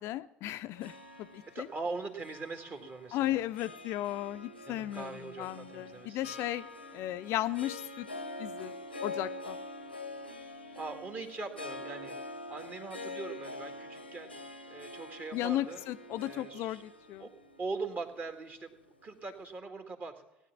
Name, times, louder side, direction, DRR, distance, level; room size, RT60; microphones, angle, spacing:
voice 1, 0.0-1.7 3.1-6.7 6.9-8.1 8.4-8.7 9.0-9.6 15.3-17.3, left 14 dB, 55° left, 12 dB, 0.5 m, -35 dB
Harp, 0.8-19.2, left 2 dB, 90° left, 0.8 m, -45 dB
voice 2, 1.5-3.5 4.7-6.3 10.8-12.1 12.5-14.4 14.7-15.8 16.2-16.8 17.2-17.3 17.6-18.7 19.0-20.2, right 3 dB, 35° right, 6 dB, 1.9 m, -41 dB
17.5 x 9.6 x 6.0 m, 0.88 s
figure-of-eight pair, 60°, 5 cm